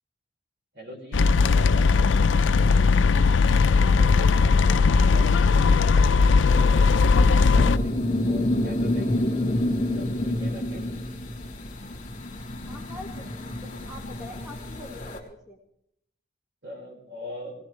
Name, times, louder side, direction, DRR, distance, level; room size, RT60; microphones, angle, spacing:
voice 1, 0.7-1.8 6.3-9.4 9.9-10.8 16.6-17.5, left 1 dB, 60° right, 0 dB, 5.0 m, -42 dB
sound 1, 1.1-7.8, left 4 dB, 70° left, 0.5 m, -18 dB
voice 2, 3.6-5.6 12.7-15.6, left 1 dB, 5° right, -1 dB, 1.9 m, -44 dB
sound 2, 6.5-15.2, left 1 dB, 40° left, 3.1 m, -29 dB
19.5 x 18.5 x 3.3 m, 0.74 s
head